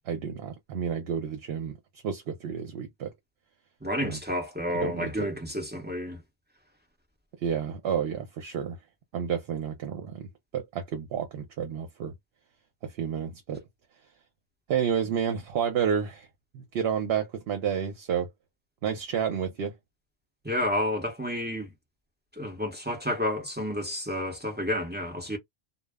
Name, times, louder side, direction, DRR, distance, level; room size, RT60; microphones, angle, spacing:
voice 1, 0.1-1.8 2.0-3.1 4.0-4.2 4.8-5.3 7.4-8.8 9.1-12.1 12.8-13.6 14.7-16.3 16.5-18.3 18.8-19.7, right 8 dB, 70° right, 0.9 m, -30 dB
voice 2, 3.8-6.2 20.4-21.7 22.4-25.4, left 1 dB, 10° right, 0.7 m, -30 dB
2.2 x 2.0 x 3.4 m
omnidirectional pair, 1.1 m